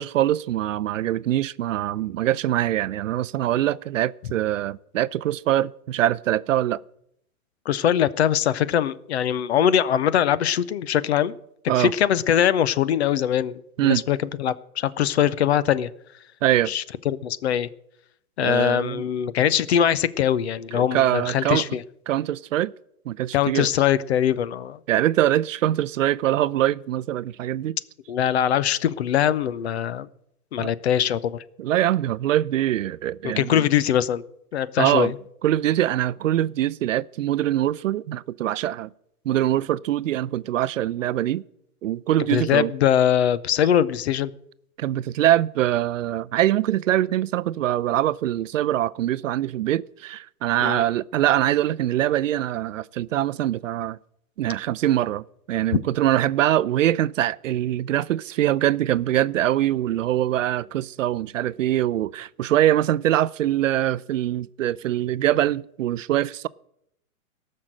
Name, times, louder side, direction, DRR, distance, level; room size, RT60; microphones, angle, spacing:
voice 1, 0.0-6.8 11.7-11.9 13.8-14.0 16.4-16.7 18.4-19.0 20.7-21.6 22.1-22.7 23.1-23.7 24.9-27.8 30.6-30.7 31.6-33.6 34.8-35.1 35.4-38.9 39.3-41.4 41.8-42.7 44.8-54.0 54.4-66.5, right 12 dB, 60° right, 0.5 m, -23 dB
voice 2, 7.7-11.4 11.6-15.9 16.7-17.7 18.4-21.8 23.3-24.8 28.1-30.1 30.5-31.4 33.2-34.2 34.5-35.1 42.3-44.3 50.6-50.8, left 10 dB, 50° left, 0.6 m, -22 dB
17.5 x 6.5 x 7.6 m
hypercardioid pair, 165°, 43 cm